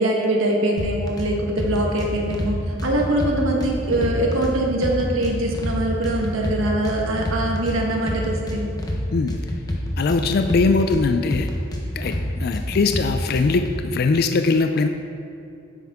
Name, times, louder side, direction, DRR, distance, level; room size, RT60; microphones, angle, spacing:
voice 1, 0.0-8.7, right 1 dB, 80° right, -1 dB, 1.4 m, -23 dB
sound 1, 0.8-1.3 1.6-2.5 2.8-4.5 4.8-5.7 6.0-7.8 8.1-9.0 9.3-11.0 11.3-12.2 12.5-13.7, left 1 dB, 20° left, 1.0 m, -27 dB
voice 2, 10.0-11.5 12.0-14.9, left 4 dB, 50° left, 7 dB, 0.4 m, -21 dB
10.0 x 8.1 x 3.6 m, 2.6 s
head